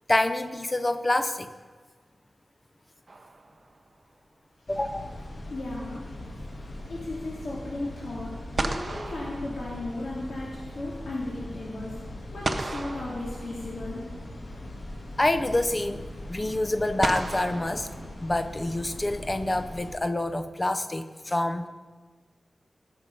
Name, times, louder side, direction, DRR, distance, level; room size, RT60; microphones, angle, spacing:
voice 1, 0.1-1.5 4.7-5.2 15.2-21.7, left 1 dB, 25° left, 10 dB, 0.6 m, -27 dB
sound 1, 3.1-4.0 8.0-8.1 8.6-10.3 12.4-14.0 15.4-15.5 17.0-18.7, right 2 dB, 45° right, 0.7 m, -35 dB
sound 2, 4.7-19.9, left 1 dB, 55° left, 1.6 m, -41 dB
voice 2, 5.5-6.0 6.9-11.9 12.3-14.0, left 2 dB, 80° left, -6 dB, 2.2 m, -35 dB
17.0 x 6.1 x 5.4 m, 1.5 s
wide cardioid pair, 85°, 0 cm